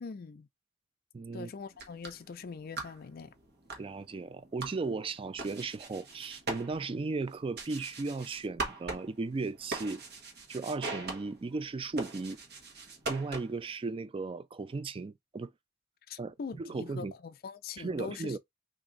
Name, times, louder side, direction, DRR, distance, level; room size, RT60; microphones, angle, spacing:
voice 1, 0.0-0.5 1.3-3.3 16.1-18.4, left 5 dB, 50° left, 0.4 m, -42 dB
voice 2, 1.1-1.5 3.8-10.0 10.5-12.4 13.1-15.5 16.2-17.1 17.8-18.4, right 3 dB, 25° right, 0.3 m, -36 dB
sound 1, 1.6-13.7, right 3 dB, 55° right, 1.1 m, -42 dB
3.0 x 2.6 x 3.8 m
head